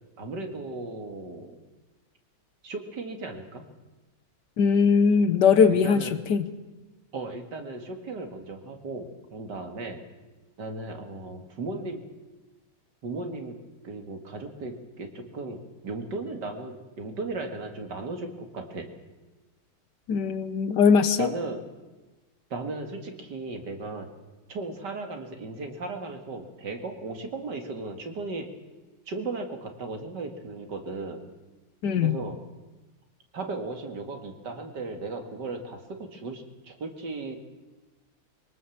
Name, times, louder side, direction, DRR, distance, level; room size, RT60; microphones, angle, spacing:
voice 1, 0.2-1.6 2.6-3.7 5.8-6.2 7.1-10.0 10.6-12.0 13.0-13.6 13.8-18.9 21.2-21.6 22.5-24.1 24.5-28.5 29.1-31.2 32.0-32.4 33.3-37.4, right 3 dB, 65° right, 5 dB, 2.6 m, -36 dB
voice 2, 4.6-6.5 20.1-21.3 31.8-32.2, left 6 dB, 70° left, 12 dB, 1.7 m, -20 dB
23.0 x 19.0 x 7.2 m, 1.2 s
omnidirectional pair, 2.0 m